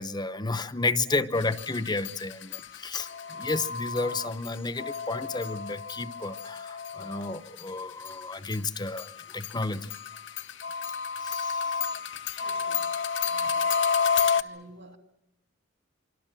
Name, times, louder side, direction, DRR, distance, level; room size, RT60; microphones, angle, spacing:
voice 1, 0.0-10.0 11.2-11.9 13.4-13.5, left 3 dB, 20° left, 0.8 m, -32 dB
sound 1, 1.4-7.6 8.0-14.4, left 6 dB, 65° left, 0.9 m, -31 dB
voice 2, 12.4-13.0 13.3-13.9 14.4-15.0, right 2 dB, 65° right, 3.1 m, -51 dB
26.0 x 25.5 x 6.0 m
head